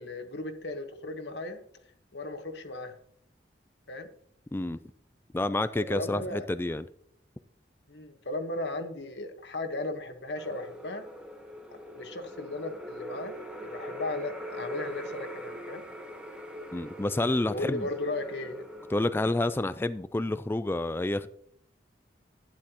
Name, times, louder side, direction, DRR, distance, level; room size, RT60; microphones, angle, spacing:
voice 1, 0.0-1.6 2.1-2.9 3.9-4.1 5.8-6.5 7.9-11.0 11.9-15.8 17.5-18.7, left 2 dB, 70° left, 1.4 m, -36 dB
voice 2, 5.3-6.8 16.7-17.9 18.9-21.3, left 2 dB, 15° left, 0.3 m, -29 dB
sound 1, 10.4-19.6, equal, 5° right, 1.2 m, -42 dB
12.0 x 9.8 x 3.0 m
head